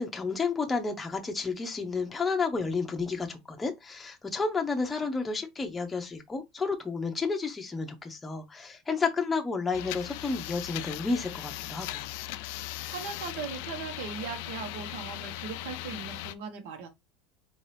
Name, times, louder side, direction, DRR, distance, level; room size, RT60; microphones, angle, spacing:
voice 1, 0.0-12.1, left 4 dB, 10° left, 0.7 m, -31 dB
sound 1, 9.7-16.3, left 15 dB, 65° left, 0.4 m, -38 dB
voice 2, 12.9-16.9, right 6 dB, 70° right, 1.3 m, -39 dB
4.4 x 2.8 x 3.3 m
cardioid pair, 165°, 0 cm